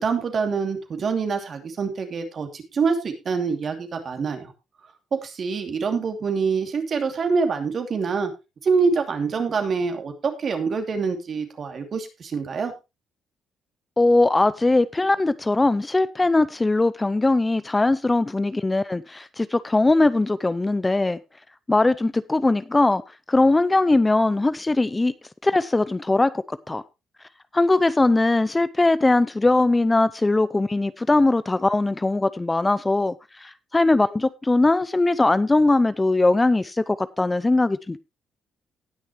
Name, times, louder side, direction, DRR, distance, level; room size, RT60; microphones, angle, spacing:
voice 1, 0.0-4.5 5.1-8.3 8.6-12.7, right 5 dB, 50° right, 2.6 m, -25 dB
voice 2, 14.0-21.2 21.7-23.0 23.3-25.1 25.4-26.8 27.5-38.0, left 2 dB, 20° left, 0.5 m, -20 dB
18.5 x 6.4 x 3.1 m
cardioid pair, 90°, 0 cm